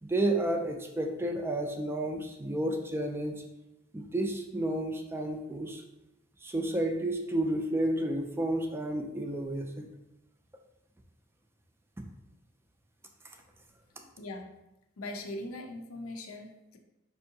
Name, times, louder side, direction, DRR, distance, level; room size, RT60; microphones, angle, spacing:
voice 1, 0.0-3.4 3.9-5.8 6.4-9.9 12.0-12.1, right 1 dB, 10° right, 3 dB, 0.3 m, -31 dB
voice 2, 14.2-14.6 15.0-16.8, left 1 dB, 85° left, 4 dB, 0.5 m, -40 dB
4.5 x 2.6 x 2.7 m, 0.92 s
head